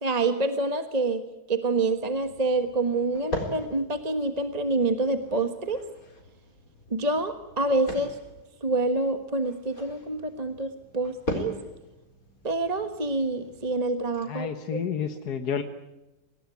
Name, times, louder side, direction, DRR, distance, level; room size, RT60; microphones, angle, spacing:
voice 1, 0.0-5.8 6.9-8.2 8.6-11.6 12.4-14.8, right 2 dB, 25° right, 8 dB, 1.3 m, -27 dB
sound 1, 1.9-14.3, left 1 dB, 60° left, 4.8 m, -41 dB
voice 2, 14.3-15.6, left 7 dB, 80° left, 7 dB, 1.8 m, -30 dB
25.5 x 18.5 x 9.3 m, 1.0 s
omnidirectional pair, 1.7 m